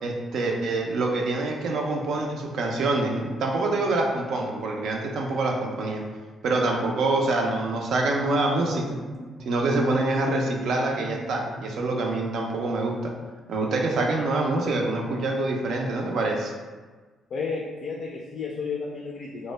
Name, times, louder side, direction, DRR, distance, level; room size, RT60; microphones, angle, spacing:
voice 1, 0.0-6.0 6.4-8.9 9.5-13.1 13.5-16.5, right 2 dB, 70° right, 1 dB, 0.4 m, -25 dB
sound 1, 7.9-11.7, right 1 dB, 15° right, 0.5 m, -42 dB
voice 2, 17.3-19.5, left 4 dB, 60° left, -2 dB, 0.3 m, -32 dB
2.1 x 2.0 x 3.1 m, 1.4 s
cardioid pair, 90°, 0 cm